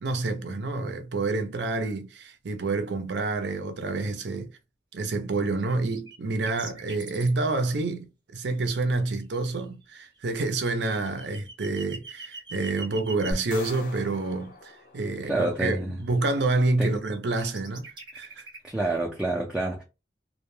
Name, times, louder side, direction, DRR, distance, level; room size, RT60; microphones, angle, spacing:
voice 1, 0.0-4.5 4.9-17.9 18.1-18.5, right 3 dB, 70° right, 0.5 m, -28 dB
sound 1, 5.6-5.7 5.9-7.3 8.4-8.9 9.2-13.4 14.3-15.6 16.0-16.6 16.9-18.6, right 3 dB, 25° right, 0.8 m, -43 dB
sound 2, 13.3-15.7, left 1 dB, 50° left, 0.6 m, -40 dB
voice 2, 15.3-16.0 16.8-17.0 18.6-19.8, right 2 dB, 5° right, 0.4 m, -28 dB
2.2 x 2.1 x 3.0 m
head